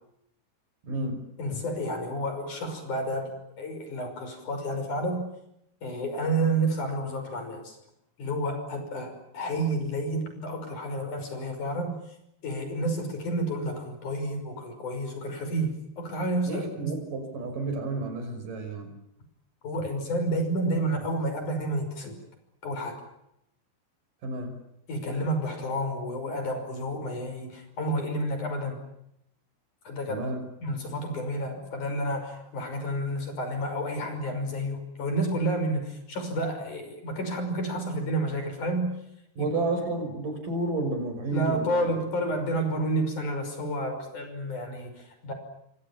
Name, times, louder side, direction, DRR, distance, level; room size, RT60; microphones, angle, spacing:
voice 1, 0.8-1.2 16.5-18.9 24.2-24.5 30.1-30.4 39.4-42.0, right 2 dB, 55° right, 7 dB, 7.3 m, -31 dB
voice 2, 1.4-5.3 5.8-7.8 8.2-12.0 12.4-16.9 19.6-22.2 22.6-23.0 24.9-28.8 29.9-30.3 30.6-38.9 39.4-39.5 41.3-45.3, right 1 dB, 50° left, 6 dB, 7.1 m, -30 dB
29.0 x 24.5 x 7.3 m, 0.80 s
omnidirectional pair, 4.5 m